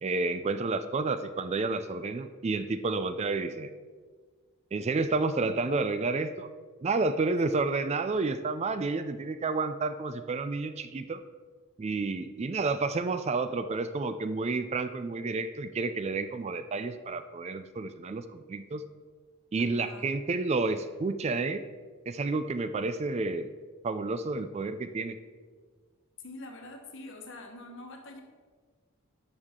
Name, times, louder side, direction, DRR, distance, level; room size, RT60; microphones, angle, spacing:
voice 1, 0.0-3.7 4.7-6.5 6.8-11.2 11.8-18.8 19.5-21.6 22.1-23.5 23.8-25.2, right 3 dB, 30° right, 10 dB, 0.3 m, -30 dB
voice 2, 19.6-20.1 26.2-28.2, left 2 dB, 60° left, 3 dB, 1.3 m, -45 dB
11.5 x 6.5 x 3.7 m, 1.5 s
head